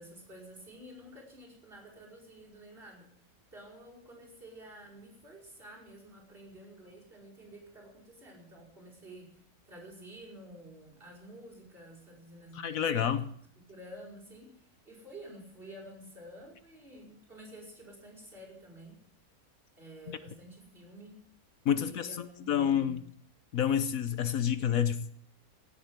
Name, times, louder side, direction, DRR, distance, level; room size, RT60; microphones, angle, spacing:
voice 1, 0.0-3.1 3.5-13.1 13.7-19.0 19.8-21.2 21.8-23.0, right 1 dB, 35° right, -3 dB, 5.7 m, -50 dB
voice 2, 12.5-13.2 21.6-23.0 23.5-25.1, left 9 dB, 70° left, 13 dB, 1.2 m, -29 dB
17.0 x 8.1 x 9.5 m, 0.63 s
omnidirectional pair, 1.6 m